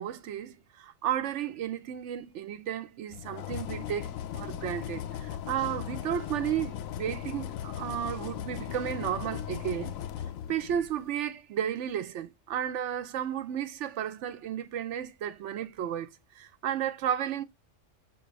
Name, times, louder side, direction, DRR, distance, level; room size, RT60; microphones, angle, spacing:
voice 1, 0.0-10.0 10.5-16.1 16.4-17.4, right 10 dB, 70° right, 0.8 m, -33 dB
sound 1, 3.1-11.1, left 10 dB, 85° left, 1.0 m, -38 dB
6.6 x 2.6 x 3.0 m
omnidirectional pair, 1.4 m